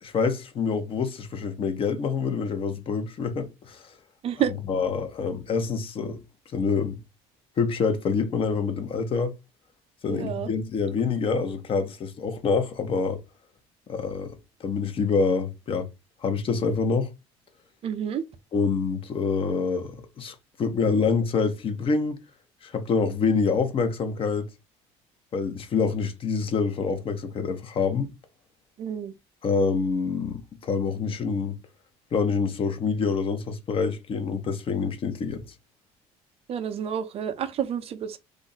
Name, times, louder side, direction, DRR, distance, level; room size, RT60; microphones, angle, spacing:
voice 1, 0.0-3.9 4.7-6.2 6.5-7.0 7.6-9.3 10.0-13.2 13.9-14.3 14.6-15.9 16.2-17.1 18.5-22.2 22.6-24.5 25.3-28.1 29.4-31.6 32.1-35.4, left 5 dB, 45° left, 0.7 m, -26 dB
voice 2, 10.1-10.5 17.8-18.2 28.8-29.1 36.5-38.2, right 9 dB, 50° right, 0.4 m, -29 dB
2.4 x 2.0 x 3.8 m
supercardioid pair, 85°, 13 cm